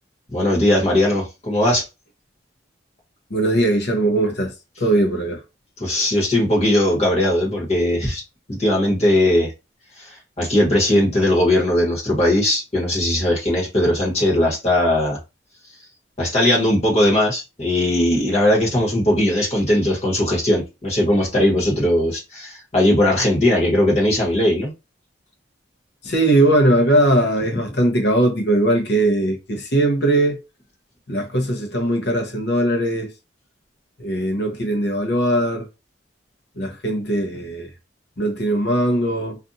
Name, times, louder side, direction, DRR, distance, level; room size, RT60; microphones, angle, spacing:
voice 1, 0.3-1.8 5.8-8.2 8.5-9.5 10.0-15.2 16.2-24.7, left 1 dB, 35° left, 1.2 m, -19 dB
voice 2, 3.3-4.5 4.8-5.4 26.0-30.4 31.1-33.1 34.0-35.7 36.6-37.7 38.2-39.4, right 1 dB, 55° left, 0.8 m, -19 dB
2.5 x 2.4 x 2.6 m
head